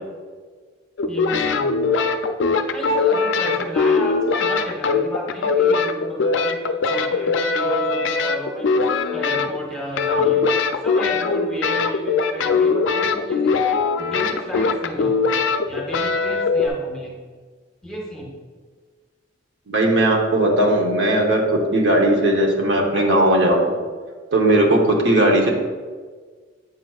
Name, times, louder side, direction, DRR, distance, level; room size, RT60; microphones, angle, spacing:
sound 1, 1.0-9.7 10.0-16.7, left 4 dB, 75° left, 0.4 m, -21 dB
voice 1, 1.0-1.8 2.5-8.7 9.1-10.4 10.8-13.7 14.0-17.3 17.8-18.3 24.5-24.7, left 1 dB, 5° left, -2 dB, 1.0 m, -33 dB
voice 2, 19.7-23.7 24.3-25.5, right 1 dB, 70° right, 0 dB, 0.9 m, -17 dB
8.1 x 5.8 x 2.3 m, 1.5 s
head